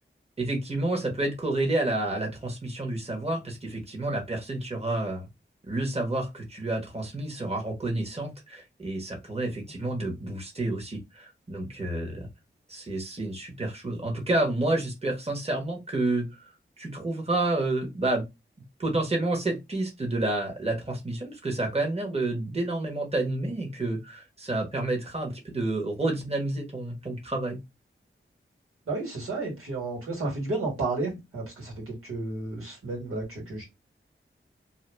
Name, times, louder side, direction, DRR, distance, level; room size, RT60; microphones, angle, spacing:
voice 1, 0.4-5.3 5.7-12.3 12.7-18.2 18.8-27.6, right 2 dB, 30° right, 0 dB, 1.3 m, -29 dB
voice 2, 28.9-33.6, right 2 dB, 85° right, -3 dB, 1.7 m, -32 dB
2.8 x 2.3 x 3.4 m, 0.22 s
cardioid pair, 40°, 21 cm